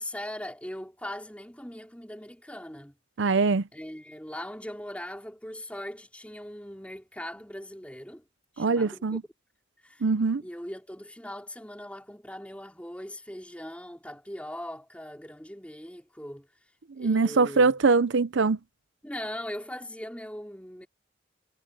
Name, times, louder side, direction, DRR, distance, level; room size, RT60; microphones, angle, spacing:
voice 1, 0.0-3.0 3.7-8.2 8.5-9.2 9.8-10.1 10.4-16.5 17.0-17.8 19.0-20.9, left 1 dB, 5° left, 4.6 m, -40 dB
voice 2, 3.2-3.6 8.6-9.2 10.0-10.4 17.0-18.6, right 4 dB, 70° right, 0.6 m, -23 dB
head